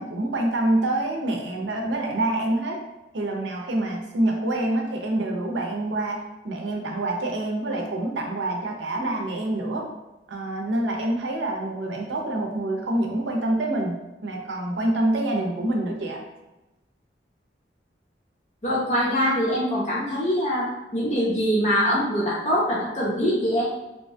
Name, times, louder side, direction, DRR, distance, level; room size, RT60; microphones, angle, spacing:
voice 1, 0.0-2.8 3.1-6.2 6.4-9.8 10.3-16.2, right 1 dB, 85° right, 0 dB, 0.6 m, -26 dB
voice 2, 18.6-23.6, equal, 40° left, -7 dB, 0.6 m, -23 dB
2.8 x 2.2 x 2.6 m, 1.0 s
head